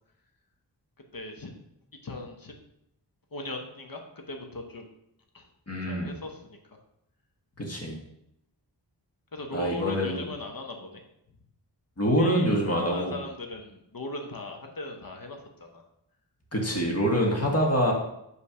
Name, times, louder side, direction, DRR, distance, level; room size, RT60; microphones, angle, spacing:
voice 1, 1.1-1.5 2.0-2.5 3.3-4.8 5.3-5.5 5.9-6.4 6.7-6.8 9.3-11.0 12.2-15.8, left 2 dB, 50° left, 3 dB, 1.0 m, -39 dB
voice 2, 5.7-6.1 7.6-8.0 9.5-10.3 12.0-13.1 16.5-17.9, equal, 35° left, -1 dB, 1.5 m, -25 dB
5.2 x 3.3 x 5.6 m, 0.80 s
wide cardioid pair, 60°, 43 cm